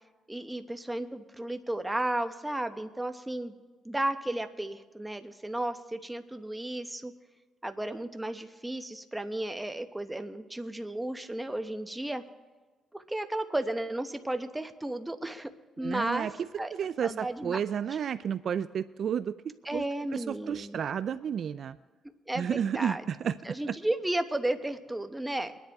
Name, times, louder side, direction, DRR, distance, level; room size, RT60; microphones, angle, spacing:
voice 1, 0.3-3.5 3.8-7.1 7.6-12.2 12.9-15.5 15.8-16.3 16.6-16.7 17.0-17.6 19.6-20.8 22.3-23.0 23.4-25.6, right 1 dB, 10° right, 8 dB, 0.9 m, -33 dB
voice 2, 15.8-16.3 16.7-19.4 19.7-19.8 20.1-21.8 22.4-23.3, right 8 dB, 60° right, 14 dB, 0.3 m, -31 dB
23.0 x 10.5 x 3.5 m, 1.3 s
cardioid pair, 90°, 0 cm